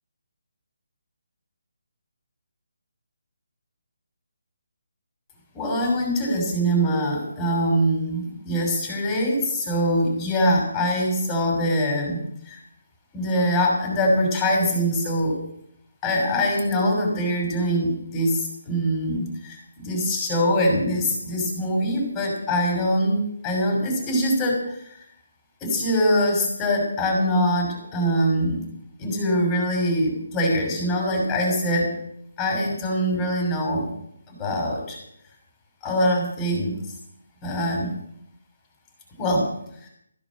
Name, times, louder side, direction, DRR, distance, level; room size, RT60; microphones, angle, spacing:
voice 1, 5.5-12.6 13.1-15.4 16.0-24.8 25.6-28.6 29.0-31.9 32.4-33.9 34.3-35.0 35.8-36.8 37.4-37.9 39.2-39.5 39.8-39.9, equal, 15° left, 0 dB, 6.1 m, -23 dB
15.5 x 12.0 x 6.3 m, 0.72 s
figure-of-eight pair, 150°, 0 cm